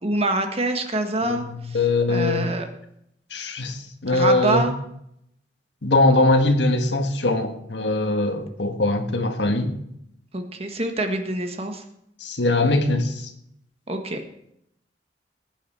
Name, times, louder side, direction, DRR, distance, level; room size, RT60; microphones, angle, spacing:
voice 1, 0.0-1.8 2.1-2.7 4.1-4.7 10.3-11.8 13.9-14.2, right 2 dB, 35° right, 1.6 m, -25 dB
voice 2, 1.7-2.5 3.3-4.7 5.8-9.7 12.2-13.1, left 2 dB, 75° left, 1.6 m, -21 dB
19.5 x 9.1 x 4.5 m
head